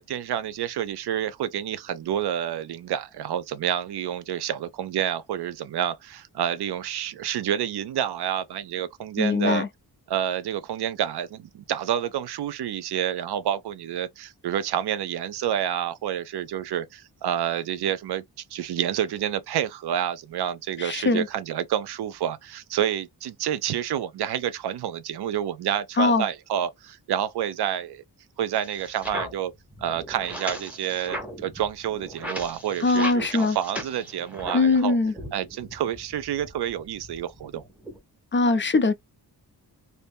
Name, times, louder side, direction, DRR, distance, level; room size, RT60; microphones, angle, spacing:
voice 1, 0.0-9.6 10.1-18.2 18.5-28.0 28.4-29.5 29.8-35.0 35.3-37.6, right 10 dB, 80° right, 0.6 m, -29 dB
voice 2, 9.2-9.7 20.8-21.3 26.0-26.3 32.8-33.6 34.5-35.1 38.3-38.9, left 3 dB, 30° left, 0.4 m, -21 dB
sound 1, 28.5-34.8 35.1-38.0, equal, 5° right, 1.0 m, -38 dB
2.7 x 2.6 x 3.4 m
wide cardioid pair, 100°, 39 cm